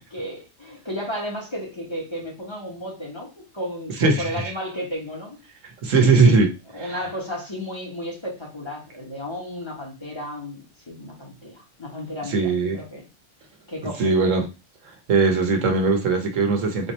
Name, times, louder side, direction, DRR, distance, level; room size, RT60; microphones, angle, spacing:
voice 1, 0.1-5.4 6.0-6.3 6.7-13.1 13.7-14.3, equal, 25° left, 1.3 m, -33 dB
voice 2, 4.0-4.5 5.6-6.5 6.8-7.0 12.3-12.8 14.0-14.5 14.8-16.9, right 4 dB, 90° right, 1.4 m, -20 dB
4.0 x 2.9 x 4.2 m
omnidirectional pair, 1.3 m